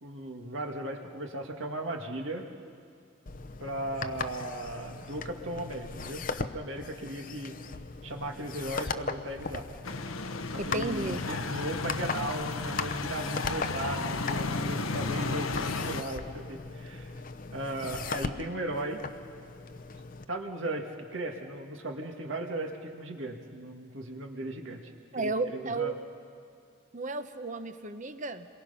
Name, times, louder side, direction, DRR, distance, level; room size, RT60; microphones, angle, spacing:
voice 1, 0.0-2.5 3.6-7.6 8.0-9.7 10.5-17.1 17.5-19.0 20.3-24.8 25.2-25.9, right 1 dB, 70° right, 2 dB, 1.9 m, -37 dB
sound 1, 3.3-20.2, left 4 dB, 40° left, 0.7 m, -39 dB
sound 2, 9.8-16.0, left 3 dB, 90° left, 1.1 m, -33 dB
voice 2, 10.6-11.2 25.1-25.9 26.9-28.5, right 3 dB, 40° right, 9 dB, 0.9 m, -33 dB
28.5 x 23.0 x 5.6 m, 2.3 s
head